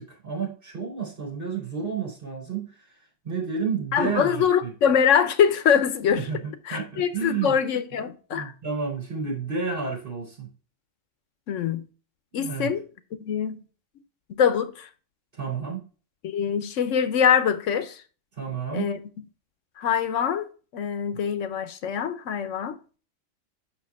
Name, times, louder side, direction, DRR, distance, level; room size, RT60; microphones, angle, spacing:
voice 1, 0.0-2.7 3.2-4.7 6.2-6.4 6.7-7.6 8.3-10.5 12.3-12.7 15.3-15.9 18.4-18.9, right 5 dB, 45° right, 3.7 m, -31 dB
voice 2, 3.9-6.3 6.7-8.5 11.5-11.8 12.3-12.8 13.2-13.6 14.3-14.9 16.2-18.0 18.7-19.0 19.8-20.5 20.7-22.8, left 7 dB, 90° left, 1.1 m, -23 dB
6.7 x 5.8 x 3.5 m
omnidirectional pair, 1.3 m